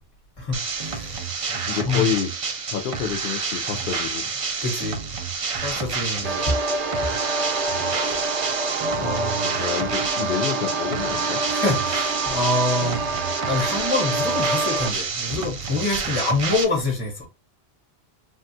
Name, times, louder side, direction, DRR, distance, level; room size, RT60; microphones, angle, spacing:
voice 1, 0.4-2.1 4.6-5.0 5.6-6.6 9.0-9.5 11.5-17.3, left 2 dB, 35° left, 1.2 m, -26 dB
sound 1, 0.5-16.6, right 5 dB, 45° right, 0.4 m, -29 dB
voice 2, 1.5-2.3 2.7-4.2 5.7-5.9 9.0-11.4, left 9 dB, 60° left, 0.6 m, -29 dB
sound 2, 6.2-14.9, right 3 dB, 85° right, 1.0 m, -27 dB
3.5 x 2.3 x 2.6 m
omnidirectional pair, 1.1 m